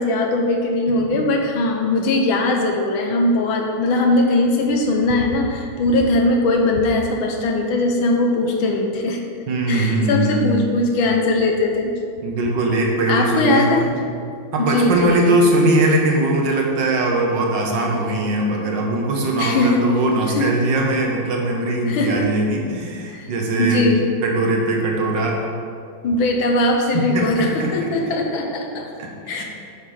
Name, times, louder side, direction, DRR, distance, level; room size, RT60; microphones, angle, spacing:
voice 1, 0.0-9.2 9.7-11.9 13.1-13.9 14.6-15.4 19.4-19.9 20.3-20.5 21.9-22.3 23.1-23.3 23.6-24.0 26.0-28.9 29.3-29.4, left 2 dB, 80° left, 2 dB, 1.6 m, -20 dB
voice 2, 9.5-10.7 12.2-14.0 14.5-23.9 24.2-25.4 26.9-27.9 29.0-29.1 29.4-29.5, right 2 dB, 65° right, 0 dB, 1.8 m, -20 dB
8.3 x 5.9 x 4.9 m, 2.4 s
omnidirectional pair, 2.2 m